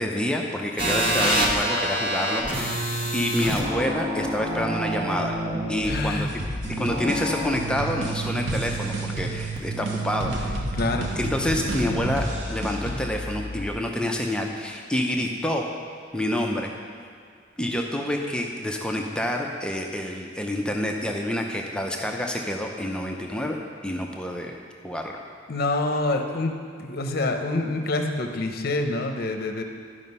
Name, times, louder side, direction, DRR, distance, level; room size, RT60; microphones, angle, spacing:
voice 1, 0.0-2.8 3.1-5.4 5.7-6.3 6.8-10.6 11.2-15.6 16.1-16.7 17.6-23.6 23.8-24.6 24.8-25.2, left 1 dB, 5° left, 1 dB, 0.6 m, -28 dB
sound 1, 0.8-13.7, right 1 dB, 25° right, 1.3 m, -29 dB
voice 2, 5.9-6.3 10.7-11.1 25.5-26.5 26.8-29.6, left 2 dB, 55° left, 5 dB, 0.8 m, -26 dB
sound 2, 6.3-13.1, right 1 dB, 70° right, 1.0 m, -33 dB
11.5 x 5.1 x 5.4 m, 2.2 s
head